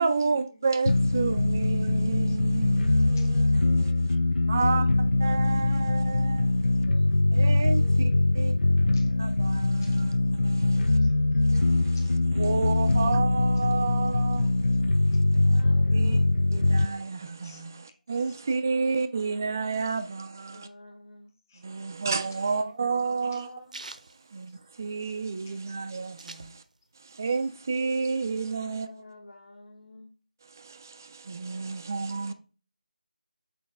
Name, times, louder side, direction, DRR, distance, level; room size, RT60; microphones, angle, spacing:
voice 1, 0.0-3.5 3.8-3.9 4.5-6.5 7.3-8.6 9.2-11.0 11.5-14.6 14.9-15.0 15.3-15.6 15.9-20.7 21.6-23.6 24.3-26.6 27.0-29.0 30.4-32.3, right 4 dB, 20° right, 0.3 m, -31 dB
sound 1, 0.9-16.9, left 2 dB, 90° left, 0.4 m, -23 dB
voice 2, 3.0-4.2 6.8-8.6 8.9-9.1 9.8-10.0 11.0-11.1 11.4-12.7 17.4-17.6 21.5-21.6 27.3-27.4, left 2 dB, 20° left, 0.9 m, -51 dB
voice 3, 15.4-16.5 20.5-21.3 22.4-23.7 28.8-30.1 32.3-32.4, left 2 dB, 65° left, 1.9 m, -49 dB
sound 2, 22.0-25.1 25.5-25.6 25.7-27.0 27.4-28.5, right 2 dB, 60° right, 0.6 m, -46 dB
6.3 x 4.6 x 3.3 m
figure-of-eight pair, 170°, 5 cm